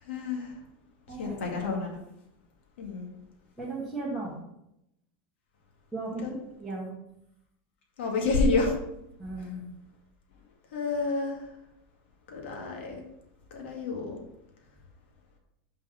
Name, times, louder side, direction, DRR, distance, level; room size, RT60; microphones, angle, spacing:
voice 1, 0.1-0.5 1.2-2.0 2.8-3.1 6.2-6.3 8.0-8.8 10.7-11.4 12.3-13.0 13.5-14.2, left 3 dB, 85° left, 1 dB, 2.2 m, -29 dB
voice 2, 1.1-1.4 3.6-4.3 5.9-6.2 6.6-6.9 9.2-9.6, right 2 dB, ahead, -8 dB, 1.4 m, -35 dB
5.9 x 5.1 x 5.8 m, 0.81 s
supercardioid pair, 180°, 6 cm